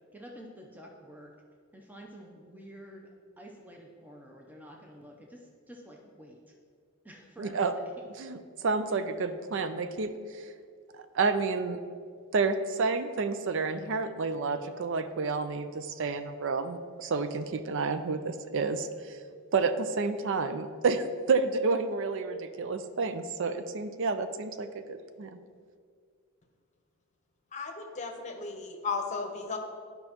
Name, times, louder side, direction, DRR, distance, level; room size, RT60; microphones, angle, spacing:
voice 1, 0.1-1.3 1.7-3.1 3.4-6.4 7.0-7.6, equal, 10° right, 0 dB, 0.6 m, -49 dB
voice 2, 7.4-7.7 8.2-10.4 11.1-11.8 12.3-19.2 19.5-25.4, right 4 dB, 60° right, 10 dB, 0.5 m, -30 dB
voice 3, 27.5-29.6, left 4 dB, 35° left, 3 dB, 0.8 m, -35 dB
12.0 x 5.2 x 2.9 m, 2.1 s
head